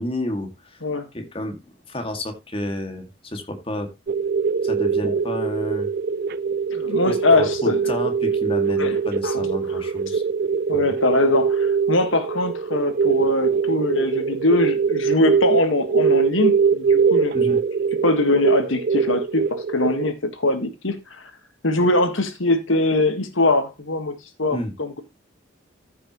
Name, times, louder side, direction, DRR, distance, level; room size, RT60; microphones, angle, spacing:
voice 1, 0.0-0.8 1.1-1.6 1.9-3.9 4.6-5.9 7.1-10.2 10.7-10.9 17.3-17.6 24.5-24.7, left 1 dB, 30° left, 2.2 m, -30 dB
sound 1, 4.1-20.1, right 5 dB, 50° right, 0.4 m, -22 dB
voice 2, 6.7-7.8 8.8-9.5 9.7-9.8 10.7-17.3 18.0-21.2 21.6-25.0, left 2 dB, 85° left, 1.6 m, -22 dB
14.5 x 6.1 x 3.1 m
head